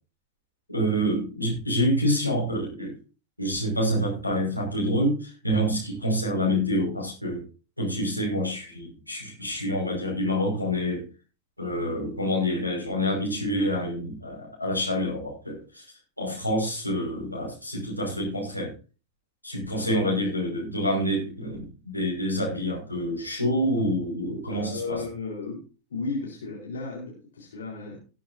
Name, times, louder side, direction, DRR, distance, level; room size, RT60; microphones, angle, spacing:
voice 1, 0.7-3.0 3.4-7.5 7.8-11.1 11.6-18.7 19.4-25.0, equal, 90° left, -2 dB, 5.5 m, -27 dB
voice 2, 24.5-25.6 25.9-28.0, left 3 dB, 65° left, -3 dB, 4.2 m, -34 dB
18.5 x 8.6 x 2.7 m, 0.33 s
figure-of-eight pair, 90°, 0 cm